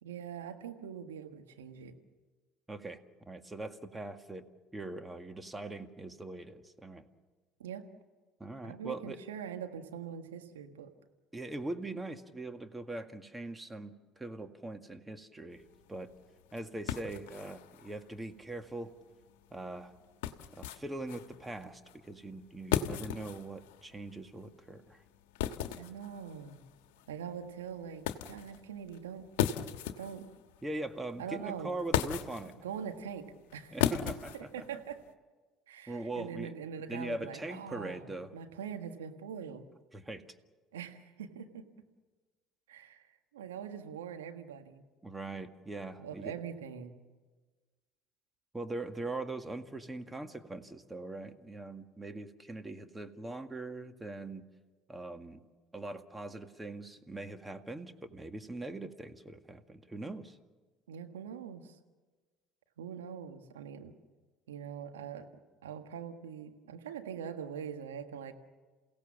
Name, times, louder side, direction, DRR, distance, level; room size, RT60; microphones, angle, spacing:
voice 1, 0.0-2.0 7.6-7.8 8.6-10.9 25.8-26.6 27.1-29.3 29.9-30.3 31.2-31.7 32.6-33.3 33.5-33.8 34.3-35.0 35.7-39.7 40.7-41.6 42.7-44.8 46.0-47.0 60.9-61.8 62.8-63.9 64.5-65.3 65.6-68.3, right 8 dB, 90° right, 6 dB, 1.6 m, -43 dB
voice 2, 2.7-3.0 3.3-4.5 4.7-7.1 8.4-9.2 11.3-15.6 15.9-16.1 16.5-18.9 19.5-19.9 20.6-25.0 30.6-32.5 33.7-34.5 35.9-36.5 36.9-38.3 39.9-40.2 45.0-46.3 48.5-54.5 54.9-55.4 55.7-60.4, right 2 dB, 15° right, 7 dB, 1.9 m, -41 dB
sound 1, 15.5-35.1, left 10 dB, 80° left, 1.2 m, -39 dB
28.5 x 17.0 x 7.3 m, 1.3 s
hypercardioid pair, 70°, 0 cm